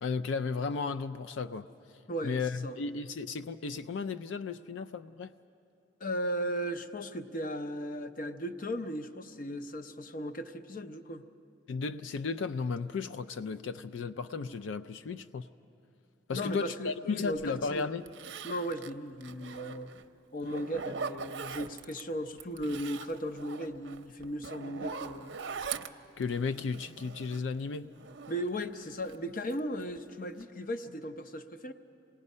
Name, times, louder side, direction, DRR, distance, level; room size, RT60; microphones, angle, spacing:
voice 1, 0.0-1.7 2.2-5.3 11.7-15.5 16.3-18.0 26.2-27.9, left 4 dB, 85° left, 12 dB, 0.4 m, -34 dB
voice 2, 2.1-2.8 6.0-11.2 16.3-17.9 18.4-19.9 20.3-25.4 28.3-31.7, equal, 45° left, 9 dB, 0.7 m, -36 dB
Zipper (clothing), 17.4-17.5 18.1-20.0 20.4-22.0 22.4-27.6 27.9-29.2 29.5-30.0 30.3-30.4, right 5 dB, 65° right, 0.6 m, -42 dB
27.0 x 18.5 x 5.4 m, 2.8 s
head